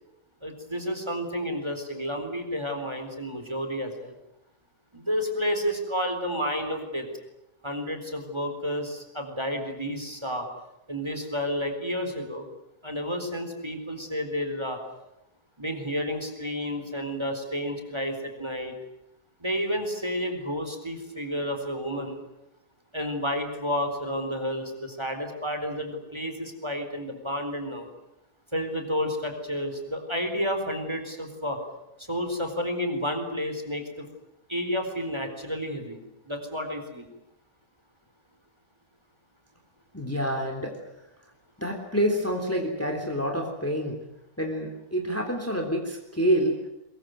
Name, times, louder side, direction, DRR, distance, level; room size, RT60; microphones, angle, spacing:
voice 1, 0.4-4.1 4.9-7.1 7.6-10.5 10.9-12.5 12.8-14.8 15.6-18.7 19.4-22.2 22.9-27.9 28.5-31.6 32.0-34.1 34.5-36.0 36.3-37.1, equal, 15° right, 5 dB, 4.2 m, -31 dB
voice 2, 39.9-40.8 41.6-44.0 44.4-46.6, equal, 10° left, 3 dB, 3.4 m, -27 dB
23.0 x 22.5 x 9.3 m, 0.87 s
omnidirectional pair, 1.6 m